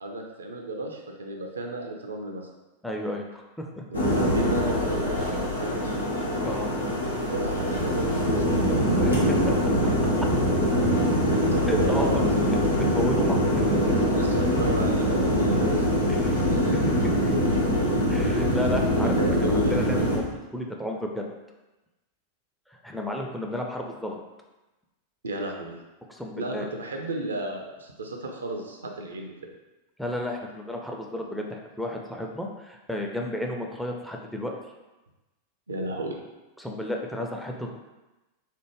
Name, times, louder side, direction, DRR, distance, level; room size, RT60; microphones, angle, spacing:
voice 1, 0.0-2.5 3.9-6.0 7.0-8.9 11.3-12.5 14.0-16.8 19.0-19.8 25.2-25.8 26.4-29.5 35.7-36.2, right 2 dB, 75° right, 2 dB, 0.4 m, -33 dB
voice 2, 2.8-3.7 5.2-5.4 6.4-6.7 9.0-9.7 11.7-12.1 12.8-13.8 16.1-16.8 17.2-17.3 18.1-21.2 22.7-24.2 26.1-26.7 30.0-34.6 36.6-37.7, left 1 dB, ahead, 0 dB, 0.3 m, -33 dB
sound 1, 3.9-20.2, equal, 80° left, 0.7 m, -23 dB
3.3 x 2.1 x 3.0 m, 1.1 s
figure-of-eight pair, 90°, 0 cm